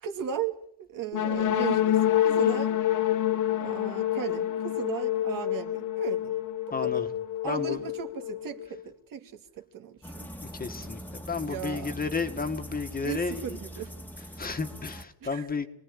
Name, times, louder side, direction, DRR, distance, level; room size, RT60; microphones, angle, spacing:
voice 1, 0.0-2.8 3.5-6.3 6.8-7.1 7.4-10.3 11.4-12.0 13.0-13.9 14.2-14.4 15.2-15.7, right 8 dB, 55° right, 2.5 m, -37 dB
sound 1, 1.1-8.8, left 12 dB, 50° left, 1.1 m, -27 dB
voice 2, 6.7-7.1 7.4-7.8 10.4-13.6 14.4-15.7, left 4 dB, 25° left, 1.8 m, -32 dB
sound 2, 10.0-15.0, equal, 5° left, 1.9 m, -42 dB
27.0 x 19.5 x 10.0 m
cardioid pair, 155°, 39 cm